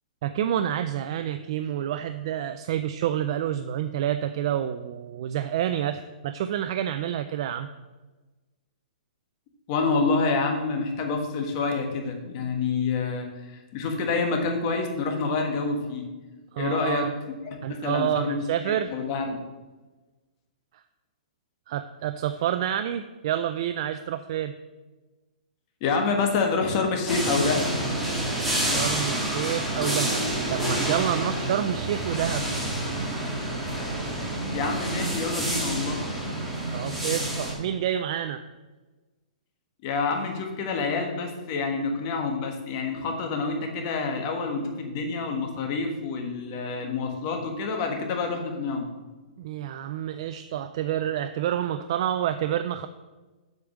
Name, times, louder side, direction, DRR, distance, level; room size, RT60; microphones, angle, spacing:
voice 1, 0.2-7.7 16.5-17.1 17.6-18.9 20.7-20.8 21.7-24.5 28.6-30.2 30.5-32.5 36.7-38.4 49.4-52.9, right 10 dB, 40° right, 9 dB, 0.4 m, -28 dB
voice 2, 9.7-16.0 16.6-17.1 17.7-18.3 18.7-19.4 25.8-27.7 34.5-36.0 39.8-48.9, left 4 dB, 30° left, 3 dB, 1.4 m, -27 dB
sound 1, 27.1-37.5, right 1 dB, ahead, 1.8 m, -28 dB
8.0 x 5.1 x 7.2 m, 1.2 s
hypercardioid pair, 165°, 4 cm